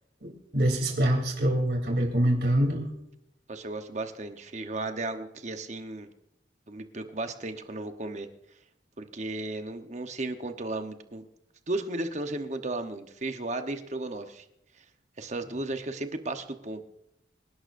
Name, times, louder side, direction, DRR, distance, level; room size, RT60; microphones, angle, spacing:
voice 1, 0.2-2.9, right 1 dB, 60° right, 2 dB, 3.3 m, -25 dB
voice 2, 3.5-6.1 6.7-8.3 9.0-11.3 11.7-14.5 14.7-14.8 15.2-16.8, right 2 dB, 40° right, 7 dB, 1.0 m, -34 dB
26.0 x 11.5 x 2.6 m, 0.80 s
head